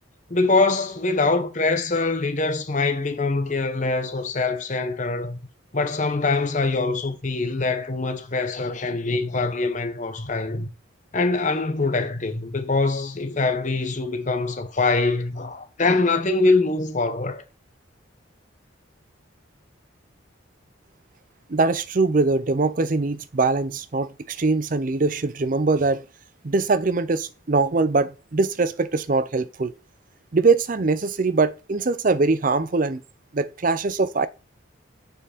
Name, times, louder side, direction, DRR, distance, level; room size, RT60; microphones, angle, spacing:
voice 1, 0.3-5.4 5.7-10.7 11.1-17.4, left 3 dB, 35° left, 0.9 m, -23 dB
voice 2, 21.5-26.0 26.4-29.7 30.3-33.0 33.3-34.3, right 3 dB, 40° right, 0.5 m, -22 dB
7.0 x 5.4 x 5.0 m
head